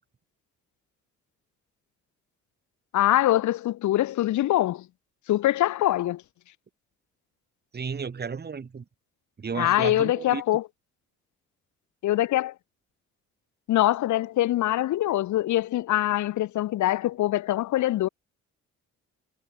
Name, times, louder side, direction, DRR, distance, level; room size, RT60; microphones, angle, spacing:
voice 1, 2.9-4.9 5.3-6.2 9.5-10.6 12.0-12.5 13.7-18.1, left 14 dB, 70° left, 0.9 m, -23 dB
voice 2, 7.7-8.8 9.4-10.4, right 5 dB, 35° right, 2.2 m, -33 dB
cardioid pair, 90°, 30 cm